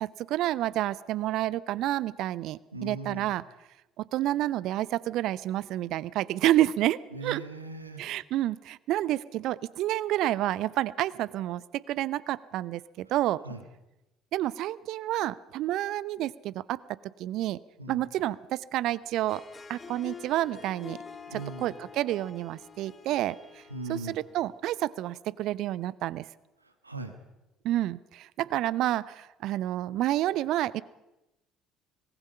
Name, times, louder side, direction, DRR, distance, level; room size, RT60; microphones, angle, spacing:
voice 1, 0.0-3.4 4.0-7.4 8.0-13.4 14.3-16.8 17.2-17.6 17.9-19.4 19.7-21.0 21.3-23.4 23.9-26.3 27.6-30.8, right 14 dB, 55° right, 20 dB, 0.6 m, -29 dB
voice 2, 2.7-3.3 7.1-8.0 13.4-13.6 17.8-18.0 21.3-21.7 23.7-24.2 26.6-27.1, right 2 dB, 90° right, 7 dB, 1.6 m, -39 dB
Harp, 19.1-24.6, left 5 dB, 30° left, 2.0 m, -47 dB
25.0 x 19.5 x 5.5 m, 0.98 s
figure-of-eight pair, 55°, 0 cm